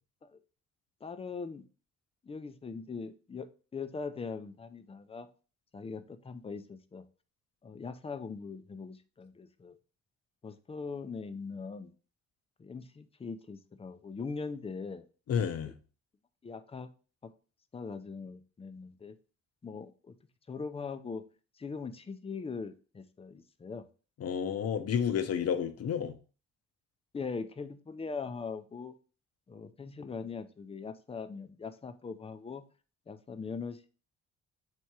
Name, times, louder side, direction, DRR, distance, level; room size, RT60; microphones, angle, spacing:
voice 1, 1.0-1.6 2.2-3.5 3.7-5.3 5.7-7.0 7.6-9.8 10.4-11.9 12.6-15.0 15.6-15.7 16.4-16.9 17.7-19.2 19.6-20.1 20.5-21.2 21.6-23.8 27.1-28.9 29.5-32.6 33.1-33.9, left 4 dB, 20° left, 0.4 m, -41 dB
voice 2, 15.3-15.8 24.2-26.2, left 8 dB, 55° left, 0.7 m, -30 dB
3.4 x 2.9 x 4.7 m
cardioid pair, 90°, 30 cm